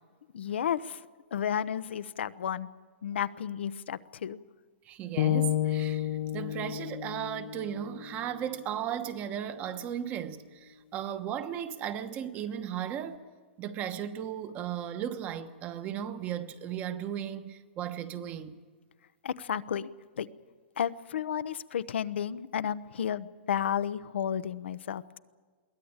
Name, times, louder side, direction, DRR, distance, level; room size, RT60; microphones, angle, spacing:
voice 1, 0.3-1.0 1.3-2.7 3.0-4.4 19.2-19.9 20.2-20.3 20.8-25.2, left 9 dB, 85° left, 0.8 m, -32 dB
voice 2, 4.8-13.2 13.6-18.6, right 10 dB, 25° right, 1.1 m, -36 dB
sound 1, 5.2-9.3, left 12 dB, 55° left, 0.9 m, -32 dB
22.5 x 16.5 x 8.9 m
hypercardioid pair, 150°, 6 cm